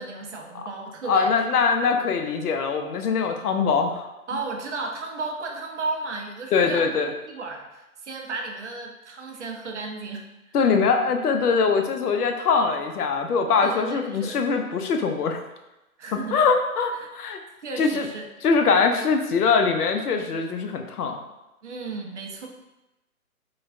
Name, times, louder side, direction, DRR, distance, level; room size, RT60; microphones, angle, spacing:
voice 1, 0.0-1.4 4.3-6.8 7.3-10.5 13.6-14.4 16.0-16.4 16.9-17.1 17.6-18.3 21.6-22.5, right 3 dB, 55° right, 2 dB, 0.5 m, -34 dB
voice 2, 1.1-4.1 6.5-7.1 10.5-15.4 16.1-17.4 17.8-18.1 18.4-21.2, left 5 dB, 85° left, 5 dB, 0.6 m, -22 dB
3.2 x 2.3 x 2.4 m, 0.99 s
hypercardioid pair, 150°, 44 cm